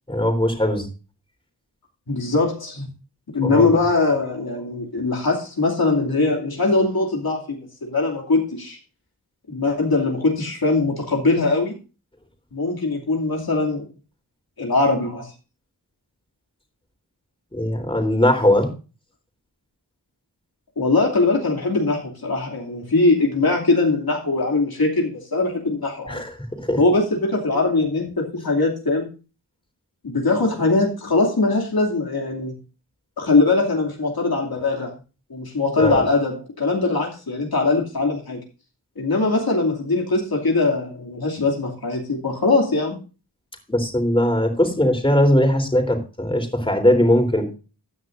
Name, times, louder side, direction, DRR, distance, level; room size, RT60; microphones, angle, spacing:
voice 1, 0.1-0.9 3.4-3.7 17.5-18.7 26.1-26.8 35.8-36.0 43.7-47.5, left 1 dB, 15° left, 4 dB, 3.5 m, -20 dB
voice 2, 2.1-2.9 3.3-8.8 9.5-11.7 12.5-13.9 14.6-15.3 20.8-26.2 26.8-29.1 30.0-32.5 33.2-34.9 35.3-38.4 39.0-43.0, left 3 dB, 60° left, -1 dB, 2.7 m, -21 dB
15.0 x 9.9 x 2.6 m, 0.33 s
wide cardioid pair, 85°, 40 cm